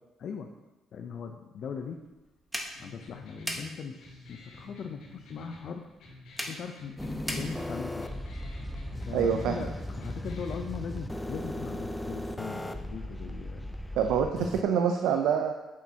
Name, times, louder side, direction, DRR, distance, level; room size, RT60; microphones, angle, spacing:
voice 1, 0.2-0.6 0.9-2.0 2.8-5.9 6.5-8.1 9.1-13.7, left 6 dB, 65° left, 4 dB, 0.6 m, -40 dB
sound 1, 1.8-7.9, equal, 10° right, 1.2 m, -42 dB
sound 2, 2.7-10.7, left 2 dB, 80° left, 2.6 m, -49 dB
sound 3, 7.0-14.6, left 1 dB, 10° left, 0.6 m, -37 dB
voice 2, 9.1-9.5 14.0-15.5, right 7 dB, 85° right, 5 dB, 0.5 m, -26 dB
8.3 x 7.4 x 2.8 m, 1.1 s
cardioid pair, 80°, 0 cm